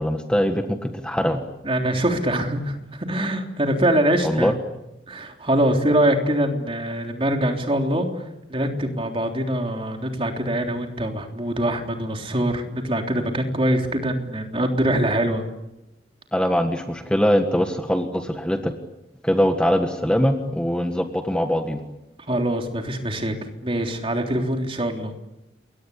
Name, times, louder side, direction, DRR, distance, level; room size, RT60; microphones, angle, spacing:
voice 1, 0.0-1.4 4.2-4.5 16.3-18.7 19.2-21.8, equal, 5° left, 5 dB, 1.5 m, -22 dB
voice 2, 1.6-4.5 5.1-15.4 22.3-23.4 23.6-25.1, right 1 dB, 30° right, 3 dB, 3.5 m, -23 dB
28.5 x 23.0 x 8.5 m, 0.92 s
head